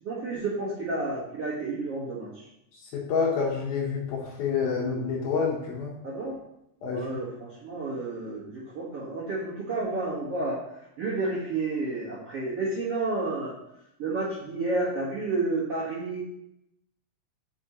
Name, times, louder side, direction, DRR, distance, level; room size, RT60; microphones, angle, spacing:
voice 1, 0.0-2.4 6.0-6.4 6.9-10.6 11.0-13.6 14.0-16.2, right 2 dB, 55° right, -8 dB, 1.8 m, -30 dB
voice 2, 2.9-5.9 6.8-7.1, left 5 dB, 65° left, -2 dB, 2.8 m, -28 dB
8.9 x 5.9 x 3.0 m, 0.80 s
omnidirectional pair, 5.0 m